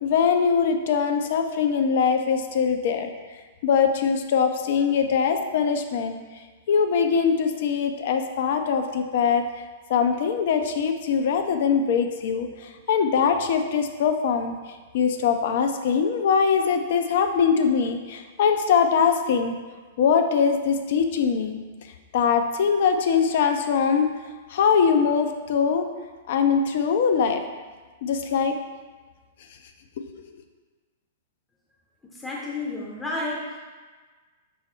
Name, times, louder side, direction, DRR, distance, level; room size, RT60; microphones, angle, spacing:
voice 1, 0.0-3.1 3.6-6.2 6.7-9.4 9.9-14.6 14.9-19.6 20.0-21.6 22.1-24.1 24.5-25.9 26.3-27.4 28.0-28.6 30.0-30.1, left 6 dB, 60° left, 6 dB, 0.4 m, -22 dB
voice 2, 32.1-33.6, left 2 dB, 10° left, -4 dB, 0.6 m, -31 dB
5.4 x 2.0 x 4.3 m, 1.4 s
hypercardioid pair, 110°, 0 cm